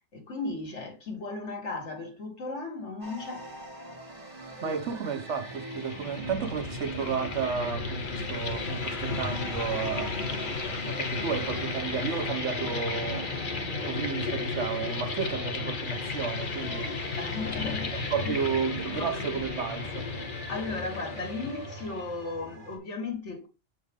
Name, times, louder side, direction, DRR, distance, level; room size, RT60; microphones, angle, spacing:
voice 1, 0.1-3.5 4.5-5.0 16.8-18.3 18.8-19.4 20.5-23.5, left 3 dB, 80° left, 2.2 m, -36 dB
sound 1, 3.0-22.8, right 1 dB, 40° right, 2.5 m, -43 dB
voice 2, 4.6-10.2 10.9-13.3 13.8-16.9 17.9-20.1, right 7 dB, 80° right, 1.2 m, -32 dB
sound 2, 5.4-22.1, left 4 dB, 45° left, 1.2 m, -34 dB
7.3 x 4.5 x 3.6 m
omnidirectional pair, 1.2 m